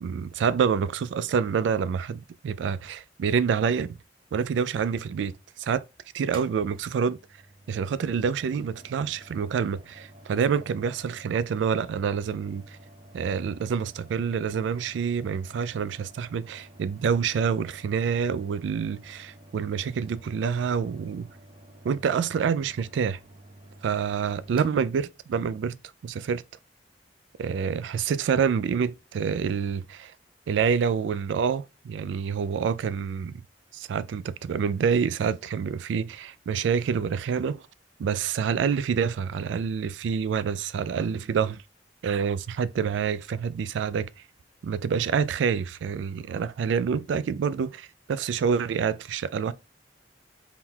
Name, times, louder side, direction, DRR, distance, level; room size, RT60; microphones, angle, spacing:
voice 1, 0.0-4.0 4.3-5.8 6.1-7.2 7.7-12.6 13.1-21.3 21.8-23.2 23.8-25.8 26.0-26.4 27.4-30.1 30.5-33.4 33.7-37.6 38.0-41.6 42.0-44.1 44.6-49.5, right 6 dB, 80° right, 0.3 m, -27 dB
Mechanical fan, 6.3-25.6, right 1 dB, 30° right, 0.6 m, -51 dB
3.7 x 2.3 x 4.3 m
head